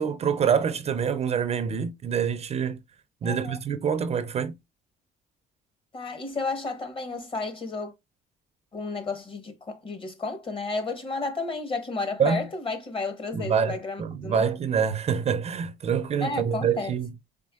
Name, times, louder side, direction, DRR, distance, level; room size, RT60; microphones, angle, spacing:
voice 1, 0.0-2.8 3.2-4.5 12.2-12.4 13.3-17.1, right 7 dB, 40° right, 0.5 m, -26 dB
voice 2, 3.2-3.6 5.9-7.9 8.7-14.5 16.2-16.9, left 3 dB, 30° left, 1.1 m, -32 dB
4.3 x 3.3 x 2.3 m
cardioid pair, 110°, 17 cm